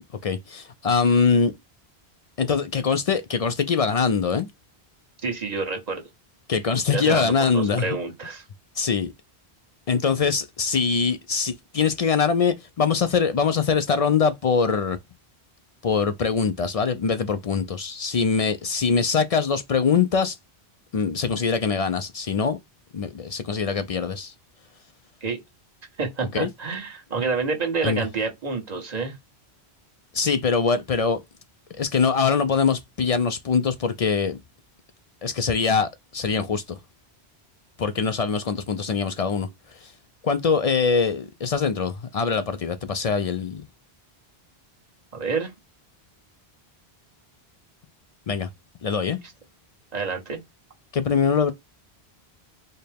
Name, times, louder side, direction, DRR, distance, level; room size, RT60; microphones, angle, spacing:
voice 1, 0.2-1.5 2.4-4.5 6.5-8.0 8.8-9.1 9.9-15.0 15.8-20.4 20.9-22.6 22.9-24.3 26.3-26.5 27.8-28.1 30.1-31.2 31.8-34.4 35.2-36.8 37.8-39.9 40.2-43.7 48.3-48.5 48.8-49.2 50.9-51.5, left 5 dB, 60° left, 0.4 m, -23 dB
voice 2, 5.2-6.1 6.9-8.4 25.2-25.4 26.0-29.2 45.1-45.5 49.9-50.4, right 4 dB, 40° right, 1.2 m, -28 dB
4.3 x 2.2 x 3.3 m
omnidirectional pair, 1.1 m